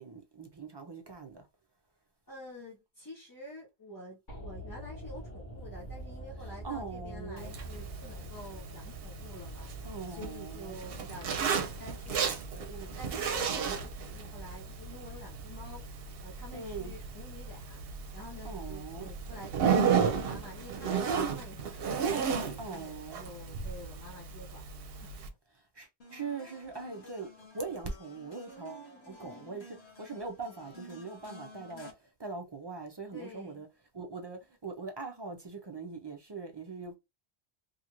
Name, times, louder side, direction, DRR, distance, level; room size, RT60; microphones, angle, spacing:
voice 1, 0.0-1.5 6.4-7.6 9.8-10.8 16.5-16.9 18.4-19.1 22.6-23.2 25.5-33.7 33.9-36.9, right 4 dB, 45° right, 0.3 m, -42 dB
voice 2, 2.3-9.7 10.1-12.3 12.5-15.8 16.2-17.8 18.1-24.8 28.4-29.6 30.2-30.3 31.7-31.9 33.1-33.6, left 1 dB, 20° left, 0.7 m, -49 dB
sound 1, 4.3-22.5 22.7-22.8, right 1 dB, 50° left, 1.2 m, -48 dB
Zipper (clothing), 7.4-25.3, right 6 dB, 65° right, 0.8 m, -34 dB
sound 2, 26.0-31.9, left 1 dB, 80° left, 1.5 m, -52 dB
2.8 x 2.5 x 2.9 m
omnidirectional pair, 1.1 m